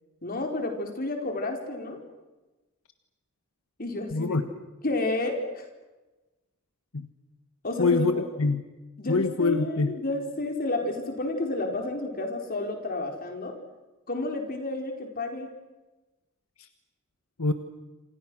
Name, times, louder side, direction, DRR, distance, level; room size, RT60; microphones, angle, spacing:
voice 1, 0.2-2.1 3.8-4.4 4.8-5.7 7.6-8.3 9.0-13.6 14.1-15.5, left 2 dB, 45° left, 3 dB, 4.3 m, -31 dB
voice 2, 4.1-4.4 6.9-7.1 7.8-8.6 9.1-9.9 16.6-16.7 17.4-17.5, left 3 dB, 80° left, 8 dB, 1.4 m, -25 dB
28.0 x 27.5 x 6.3 m, 1.1 s
head